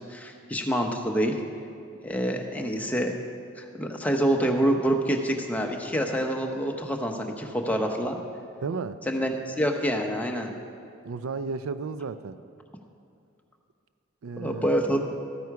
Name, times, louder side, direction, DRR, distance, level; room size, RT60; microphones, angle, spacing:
voice 1, 0.1-1.4 2.0-3.1 3.6-8.2 9.1-10.5 14.4-15.0, equal, 5° left, 2 dB, 0.8 m, -26 dB
voice 2, 8.6-9.0 11.0-12.4 14.2-14.7, right 4 dB, 75° right, 13 dB, 0.4 m, -33 dB
13.5 x 9.3 x 4.7 m, 2.5 s
head